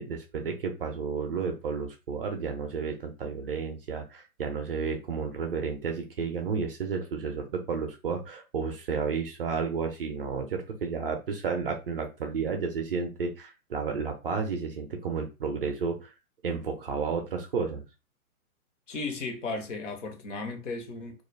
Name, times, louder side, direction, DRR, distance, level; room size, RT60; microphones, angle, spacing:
voice 1, 0.0-16.1 16.4-17.8, right 5 dB, 40° right, 0.5 m, -32 dB
voice 2, 18.9-21.2, left 3 dB, 55° left, 0.9 m, -35 dB
2.4 x 2.2 x 3.1 m
figure-of-eight pair, 130°, 44 cm